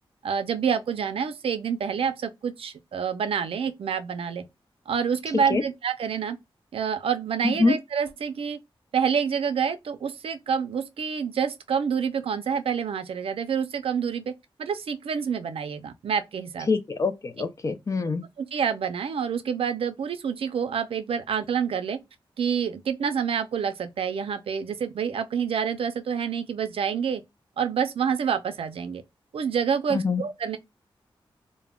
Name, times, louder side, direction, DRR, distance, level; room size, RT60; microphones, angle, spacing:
voice 1, 0.2-4.4 4.9-6.4 6.7-8.6 8.9-14.3 14.6-16.7 18.4-22.0 22.4-27.2 27.6-29.0 29.3-30.6, right 7 dB, 80° right, 0.4 m, -27 dB
voice 2, 7.4-7.7 16.7-18.2 29.9-30.2, left 4 dB, 35° left, 0.3 m, -24 dB
2.1 x 2.1 x 3.4 m
wide cardioid pair, 155°, 10 cm